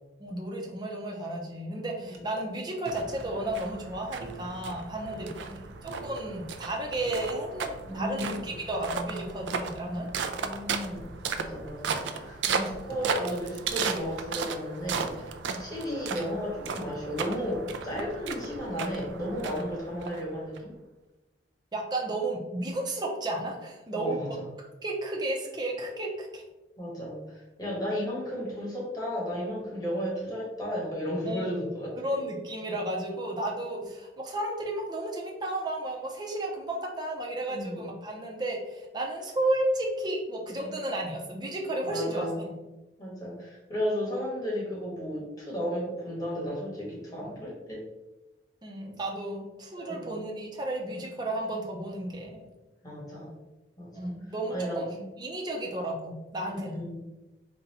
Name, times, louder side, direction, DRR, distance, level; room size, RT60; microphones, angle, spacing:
voice 1, 0.2-5.3 5.8-10.1 12.5-12.6 15.4-15.7 21.7-24.2 24.8-26.4 31.3-31.6 32.0-42.5 48.6-52.4 53.9-54.9 55.2-56.8, right 1 dB, 25° right, -1 dB, 0.6 m, -33 dB
sound 1, 2.1-2.4 2.7-3.9 4.2-5.4 5.7-7.8 8.4-9.1 9.7-9.9 10.9-11.6 12.1-12.6 12.9-14.4 15.0-16.2 16.6-16.7 17.2-17.5 17.9-18.1, right 2 dB, 60° right, 0.7 m, -49 dB
sound 2, 2.9-20.6, right 5 dB, 85° right, 0.4 m, -35 dB
voice 2, 5.0-5.6 7.8-8.5 10.1-11.1 11.3-20.7 23.9-24.5 26.8-32.0 37.5-37.9 40.6-40.7 41.9-42.4 43.0-47.8 49.8-50.1 52.8-53.3 53.8-54.1 54.5-55.0 56.5-57.1, equal, 20° left, -5 dB, 1.4 m, -34 dB
3.9 x 2.3 x 4.1 m, 1.0 s
head